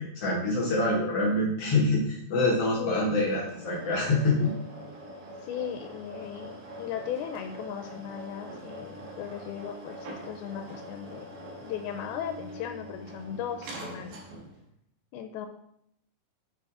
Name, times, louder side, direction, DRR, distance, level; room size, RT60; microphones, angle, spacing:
voice 1, 0.0-4.5, left 2 dB, 65° left, -2 dB, 1.6 m, -26 dB
voice 2, 2.8-3.1 5.4-14.2 15.1-15.5, left 9 dB, 85° left, 7 dB, 2.4 m, -37 dB
sound 1, 2.9-14.7, right 1 dB, 65° right, 2.7 m, -44 dB
7.8 x 7.4 x 3.7 m, 0.72 s
omnidirectional pair, 4.4 m